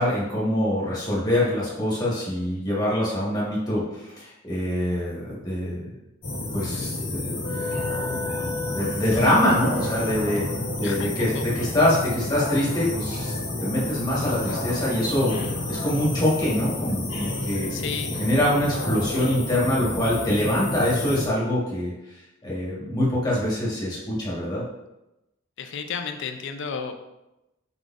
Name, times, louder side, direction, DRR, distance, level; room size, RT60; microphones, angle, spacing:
voice 1, 0.0-5.9 6.5-7.3 7.6-7.8 8.1-8.2 8.7-10.5 10.8-13.3 13.6-17.7 18.2-21.9 22.4-24.6, left 1 dB, 20° left, -6 dB, 1.4 m, -24 dB
sound 1, 6.2-21.3, left 2 dB, 85° left, 1.4 m, -30 dB
voice 2, 10.8-11.4 17.5-18.1 25.6-27.0, left 6 dB, 65° left, 6 dB, 0.4 m, -33 dB
4.7 x 3.9 x 2.5 m, 0.93 s
head